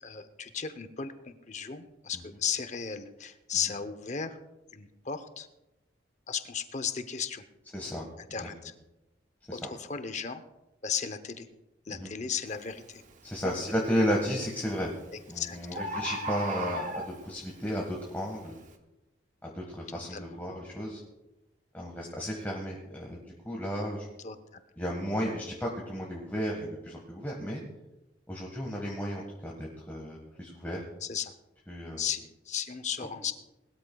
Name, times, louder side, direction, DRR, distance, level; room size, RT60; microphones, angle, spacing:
voice 1, 0.0-4.4 4.7-5.5 6.3-7.4 8.3-8.7 9.5-10.4 10.8-11.5 11.9-13.0 13.4-13.5 15.1-15.9 19.9-20.4 24.2-24.6 31.0-31.3 32.0-33.3, left 7 dB, 40° left, 11 dB, 0.8 m, -35 dB
voice 2, 7.7-8.1 8.4-8.5 9.5-9.6 11.9-12.1 13.2-14.9 15.3-18.6 19.4-21.0 21.7-24.1 24.8-27.6 28.3-30.8 31.7-32.0, equal, 10° left, -2 dB, 1.5 m, -33 dB
Bird, 12.5-12.7 13.3-13.7 14.7-14.8 15.1-15.2 15.4-15.5 15.7-17.5 18.0-18.1, right 1 dB, 40° right, 1.0 m, -35 dB
20.0 x 13.0 x 2.3 m, 0.96 s
head